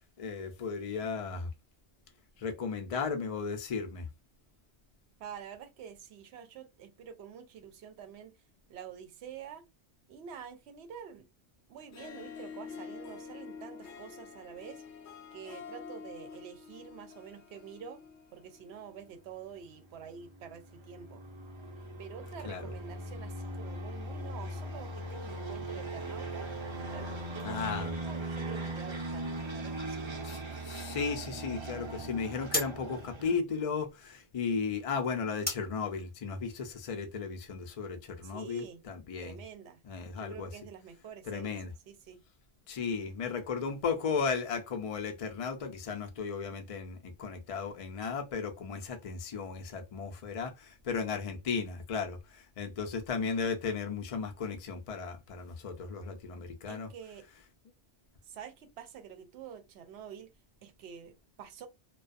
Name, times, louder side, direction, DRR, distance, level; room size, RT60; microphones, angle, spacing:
voice 1, 0.2-1.5 2.4-4.1 22.4-22.7 27.4-27.9 30.2-39.4 39.8-40.5 41.2-41.7 42.7-56.9, left 5 dB, 50° left, 0.4 m, -35 dB
voice 2, 5.2-8.3 8.7-9.6 10.1-11.3 11.7-14.8 15.3-18.0 18.3-21.2 22.0-26.5 26.9-30.1 38.2-38.8 39.2-39.8 40.2-41.6 41.9-42.2 56.7-57.3 58.3-60.3 60.6-61.7, right 8 dB, 75° right, 0.8 m, -47 dB
Harp, 11.8-19.2, left 6 dB, 80° left, 0.9 m, -47 dB
sound 1, 20.0-33.4, right 1 dB, 40° right, 0.4 m, -39 dB
sound 2, 29.4-37.9, left 1 dB, 10° left, 0.6 m, -43 dB
2.3 x 2.2 x 2.5 m
omnidirectional pair, 1.2 m